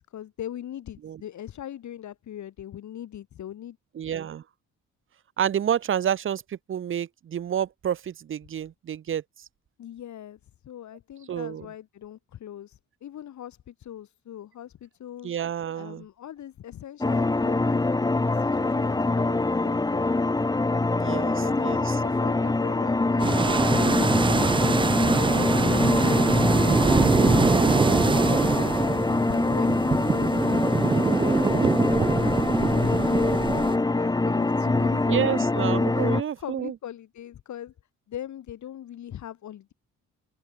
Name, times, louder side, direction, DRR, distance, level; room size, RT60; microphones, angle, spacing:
voice 1, 0.0-3.8 9.8-15.4 15.7-17.8 18.3-20.3 21.1-26.5 26.9-28.8 29.3-35.5 35.9-37.7 38.1-39.7, left 11 dB, 70° left, 5.3 m, -41 dB
voice 2, 4.0-4.4 5.4-9.2 11.3-11.6 15.2-16.0 20.9-21.9 35.1-36.7, right 9 dB, 45° right, 0.8 m, -29 dB
sound 1, 17.0-36.2, left 2 dB, 15° left, 1.1 m, -24 dB
sound 2, 23.2-33.8, right 4 dB, 15° right, 0.4 m, -24 dB
open air
cardioid pair, 90°, 30 cm